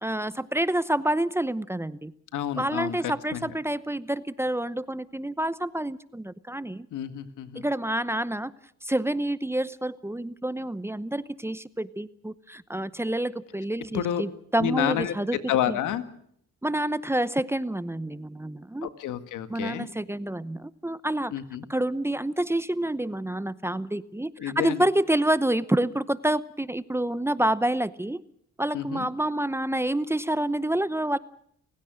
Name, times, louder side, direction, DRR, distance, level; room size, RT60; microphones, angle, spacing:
voice 1, 0.0-2.1 2.6-6.9 7.5-8.5 8.8-15.4 15.7-15.8 16.6-18.9 19.5-21.3 21.7-28.2 28.6-31.2, right 1 dB, 10° right, 16 dB, 0.8 m, -28 dB
voice 2, 2.3-3.5 6.9-7.6 13.9-14.2 14.6-15.1 15.5-16.0 18.8-19.9 21.3-21.6 24.4-24.8 28.7-29.1, left 11 dB, 80° left, 10 dB, 2.0 m, -29 dB
29.5 x 16.5 x 6.3 m, 0.68 s
cardioid pair, 90°, 30 cm